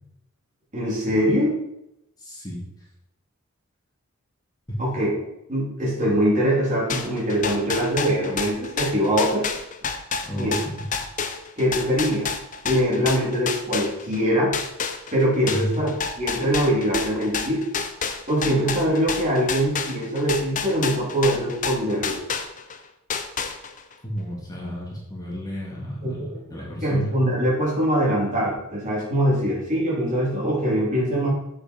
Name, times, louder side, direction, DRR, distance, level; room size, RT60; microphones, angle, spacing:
voice 1, 0.7-1.6 4.8-5.2 5.5-9.5 10.4-10.6 11.6-12.3 12.6-14.5 15.1-15.9 16.2-17.6 18.3-22.2 26.0-26.4 26.8-31.3, equal, 35° right, -5 dB, 3.3 m, -23 dB
voice 2, 2.2-2.6 4.7-4.8 10.3-10.9 15.4-15.8 24.0-27.1, equal, 20° left, -5 dB, 2.2 m, -32 dB
sound 1, 6.9-14.2 14.5-22.8 23.1-23.9, left 6 dB, 40° left, 0.7 m, -29 dB
7.3 x 6.7 x 4.6 m, 0.84 s
head